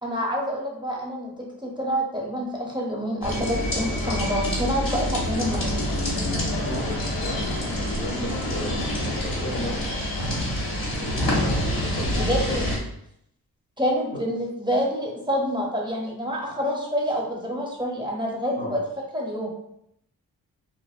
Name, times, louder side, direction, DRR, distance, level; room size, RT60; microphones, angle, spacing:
voice 1, 0.0-5.8 12.1-12.6 13.8-18.8 19.1-19.5, equal, 10° right, -2 dB, 0.6 m, -27 dB
sound 1, 3.2-12.8, left 1 dB, 90° left, 1.2 m, -26 dB
voice 2, 6.6-9.8 11.0-11.3 11.9-12.2 12.5-12.6 18.6-18.8, left 1 dB, 30° left, -2 dB, 0.5 m, -35 dB
2.4 x 2.1 x 2.4 m, 0.75 s
cardioid pair, 50°, 37 cm